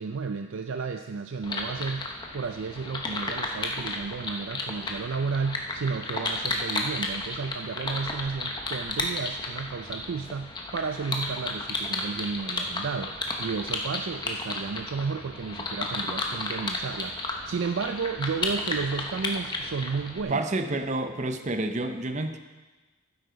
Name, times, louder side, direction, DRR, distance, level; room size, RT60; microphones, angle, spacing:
voice 1, 0.0-20.4, right 5 dB, 65° right, 7 dB, 0.4 m, -32 dB
sound 1, 1.4-20.2, left 2 dB, 20° left, 0.9 m, -33 dB
voice 2, 20.3-22.4, right 2 dB, 35° right, 8 dB, 0.7 m, -29 dB
12.5 x 9.7 x 3.9 m, 1.2 s
head